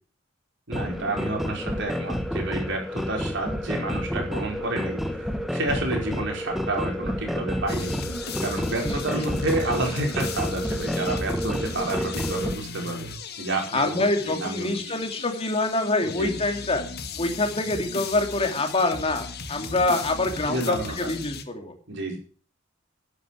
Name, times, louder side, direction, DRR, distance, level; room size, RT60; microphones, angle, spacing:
sound 1, 0.7-12.5, equal, ahead, 1.3 m, -29 dB
voice 1, 0.7-7.9 8.4-13.1 13.4-14.8 16.0-16.4 20.5-21.1 21.9-22.2, right 2 dB, 65° right, 2 dB, 5.1 m, -30 dB
sound 2, 7.7-21.4, left 4 dB, 55° left, 1.8 m, -37 dB
voice 2, 8.8-9.2 13.7-16.8 17.2-21.7, left 2 dB, 30° left, 5 dB, 2.8 m, -26 dB
11.5 x 9.5 x 8.4 m, 0.42 s
head